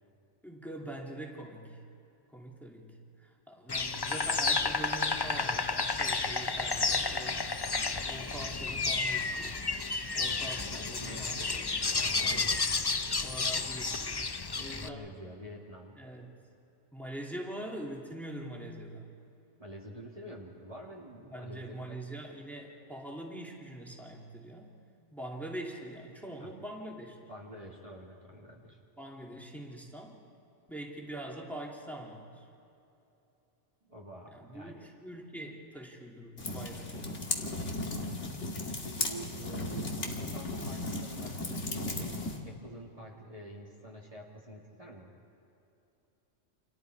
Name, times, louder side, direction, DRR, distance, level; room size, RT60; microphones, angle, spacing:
voice 1, 0.4-1.8 2.3-7.4 7.9-9.8 10.2-12.5 13.2-15.1 16.0-16.3 16.9-19.1 21.3-24.7 25.1-27.2 29.0-30.2 30.7-32.4 34.3-37.2, right 1 dB, ahead, -1 dB, 2.6 m, -44 dB
Insect, 3.7-14.9, left 4 dB, 30° left, 0.4 m, -31 dB
voice 2, 10.2-11.6 11.9-12.6 14.6-16.0 19.6-22.0 26.4-26.5 27.3-28.8 33.8-34.9 38.8-45.1, right 1 dB, 25° right, -3 dB, 2.2 m, -48 dB
sound 1, 36.4-42.4, left 2 dB, 60° left, 2.3 m, -36 dB
29.5 x 27.0 x 4.7 m, 2.9 s
omnidirectional pair, 1.4 m